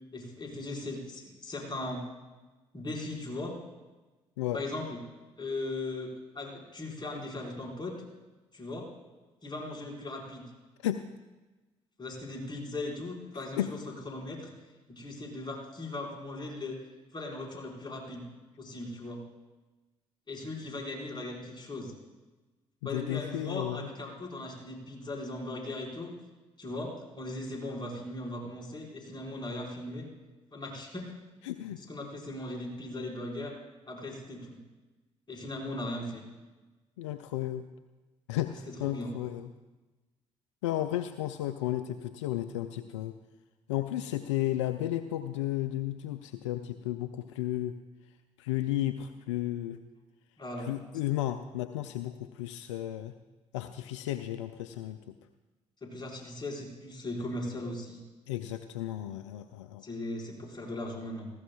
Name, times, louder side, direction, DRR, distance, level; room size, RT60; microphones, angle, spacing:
voice 1, 0.1-2.0 2.7-3.5 4.5-5.0 5.4-8.0 8.5-8.9 9.4-10.4 12.0-13.8 14.0-14.5 14.9-16.7 17.1-18.2 18.6-19.2 20.3-21.9 22.8-26.1 26.6-30.1 30.5-31.1 31.8-33.5 33.9-34.6 35.3-36.2 38.8-39.1 50.4-50.7 55.8-58.0 59.8-61.3, left 2 dB, 30° left, -2 dB, 4.7 m, -38 dB
voice 2, 22.9-23.9 31.4-31.8 37.0-37.6 38.3-39.5 40.6-43.1 43.7-47.8 48.4-49.8 50.6-53.1 53.5-55.0 58.3-59.8, left 13 dB, 85° left, 10 dB, 0.4 m, -33 dB
18.5 x 15.5 x 2.3 m, 1.2 s
hypercardioid pair, 50°, 15 cm